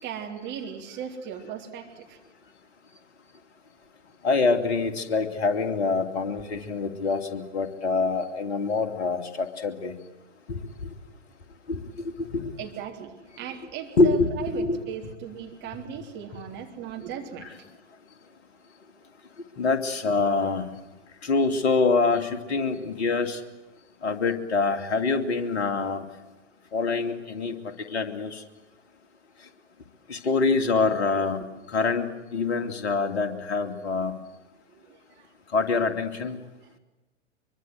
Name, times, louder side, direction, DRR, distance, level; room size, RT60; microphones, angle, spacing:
voice 1, 0.0-2.2 12.6-17.5 34.7-35.3 36.6-36.7, right 8 dB, 30° right, 3 dB, 3.7 m, -38 dB
voice 2, 4.2-9.9 10.5-10.6 11.7-12.5 14.0-14.8 17.4-17.5 19.6-20.7 21.2-23.4 24.0-26.1 26.7-28.4 30.1-34.2 35.5-36.4, left 4 dB, 55° left, 7 dB, 2.7 m, -25 dB
24.0 x 24.0 x 7.9 m, 1.1 s
figure-of-eight pair, 105°, 37 cm